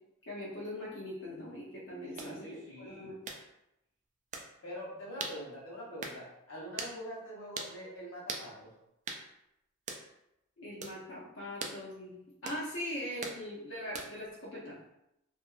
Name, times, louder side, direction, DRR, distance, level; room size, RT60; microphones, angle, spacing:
voice 1, 0.3-3.2 10.6-12.2 12.4-14.8, left 1 dB, 65° left, -7 dB, 0.6 m, -41 dB
voice 2, 2.1-3.2 4.6-8.7, equal, 90° left, -4 dB, 1.0 m, -44 dB
sound 1, 2.2-2.3 3.3-3.4 4.3-4.5 5.2-5.4 6.0-6.2 6.8-7.0 7.6-7.7 8.3-8.5 9.1-9.2 9.9-10.1 10.8-11.0 11.6-11.8 12.5-12.6 13.2-13.4 13.9-14.2, right 4 dB, 35° right, 0.3 m, -40 dB
2.7 x 2.5 x 2.4 m, 0.85 s
head